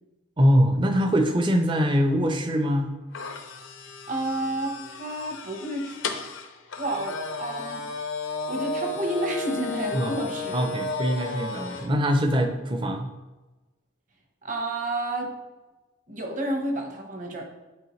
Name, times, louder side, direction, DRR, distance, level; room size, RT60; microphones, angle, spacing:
voice 1, 0.4-2.9 9.9-10.2 10.5-13.1, equal, 25° right, 5 dB, 0.6 m, -23 dB
sound 1, 3.1-11.9, left 3 dB, 75° left, 0.7 m, -34 dB
voice 2, 4.1-6.0 6.8-7.9 8.5-10.5 14.4-15.4 16.1-17.4, right 1 dB, 40° right, 2 dB, 1.0 m, -30 dB
9.7 x 4.4 x 3.1 m, 1.1 s
head